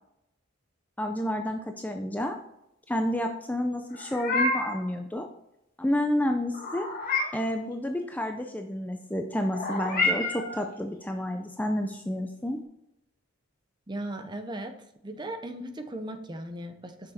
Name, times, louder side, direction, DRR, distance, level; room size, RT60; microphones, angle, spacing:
voice 1, 1.0-2.4 2.9-5.3 5.8-6.9 7.3-12.6, left 1 dB, 10° left, 4 dB, 0.5 m, -30 dB
Meow, 3.9-4.8 6.5-7.5 9.5-10.6, left 2 dB, 45° left, 1.6 m, -29 dB
voice 2, 13.9-14.7 15.0-17.1, right 1 dB, 20° right, 7 dB, 0.7 m, -37 dB
6.6 x 6.1 x 4.3 m, 0.83 s
head